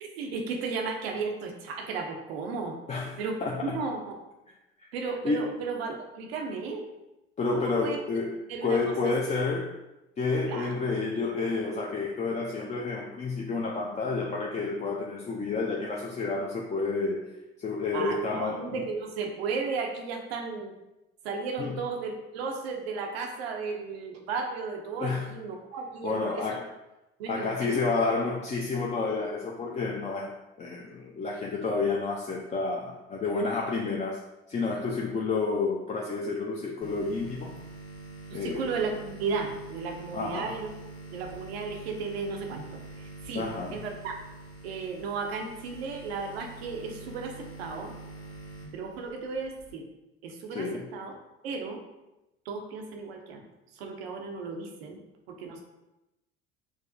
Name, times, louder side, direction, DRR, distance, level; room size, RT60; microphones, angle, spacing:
voice 1, 0.0-2.8 3.2-4.0 4.9-6.9 7.5-8.0 8.5-9.1 10.5-10.7 17.9-20.7 21.2-26.6 27.2-27.8 38.3-40.7 41.1-44.2 44.6-47.9 48.7-49.9 50.2-51.1 51.4-51.8 52.5-53.4 53.7-55.0 55.3-55.6, right 4 dB, 85° right, 3 dB, 0.6 m, -34 dB
voice 2, 3.4-3.8 5.2-5.4 7.4-8.4 8.6-9.7 10.2-17.3 17.6-18.8 21.6-21.7 25.0-25.2 26.0-26.7 27.3-34.2 34.5-37.6 38.3-38.7 40.1-40.5 43.4-43.8 50.5-50.8, left 3 dB, 25° left, -1 dB, 0.4 m, -30 dB
sound 1, 36.8-49.7, right 2 dB, 50° left, 1.3 m, -45 dB
4.7 x 2.0 x 2.6 m, 0.97 s
hypercardioid pair, 75°, 30 cm